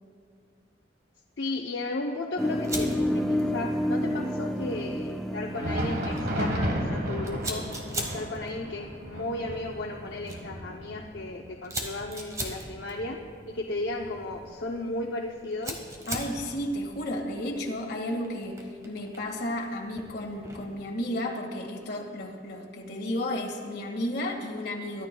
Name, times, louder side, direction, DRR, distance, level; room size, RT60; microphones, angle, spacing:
voice 1, 1.4-7.7 7.9-13.2 13.5-15.8, left 2 dB, 75° left, 0 dB, 0.7 m, -35 dB
sound 1, 2.4-7.1, left 1 dB, ahead, 0.4 m, -30 dB
Fire, 2.6-20.8, right 1 dB, 20° right, 1.3 m, -42 dB
Thunder, 5.4-14.9 15.2-15.4 16.1-16.2 17.2-17.3, equal, 60° right, 1.5 m, -34 dB
voice 2, 16.1-25.1, left 1 dB, 60° left, 0 dB, 1.8 m, -33 dB
23.0 x 12.0 x 2.3 m, 2.2 s
head